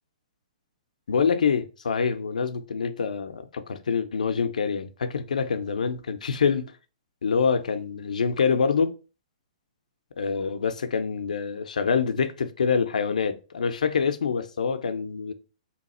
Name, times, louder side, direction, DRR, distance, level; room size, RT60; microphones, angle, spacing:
voice 1, 1.1-6.7 7.2-8.9 10.2-15.3, left 6 dB, 80° left, 0.6 m, -26 dB
2.9 x 2.3 x 4.2 m
hypercardioid pair, 140°, 4 cm